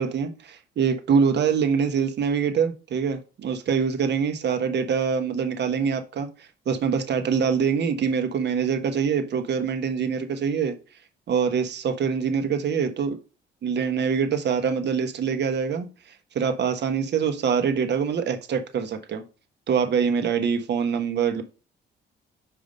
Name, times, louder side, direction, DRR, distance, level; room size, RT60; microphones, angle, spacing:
voice 1, 0.0-10.7 11.3-13.2 13.6-15.9 16.3-19.2 19.7-21.4, right 6 dB, 60° right, 1.2 m, -24 dB
5.3 x 4.8 x 5.2 m
cardioid pair, 90°, 20 cm